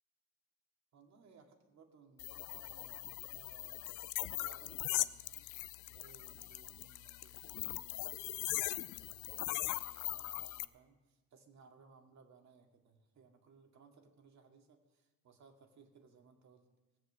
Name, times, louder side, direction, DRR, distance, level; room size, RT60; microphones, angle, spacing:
voice 1, 0.9-5.5 5.9-16.7, right 5 dB, 65° right, 3 dB, 2.3 m, -62 dB
sound 1, 2.2-10.6, left 17 dB, 85° left, 0.5 m, -40 dB
17.0 x 7.7 x 7.5 m, 1.1 s
cardioid pair, 90°, 30 cm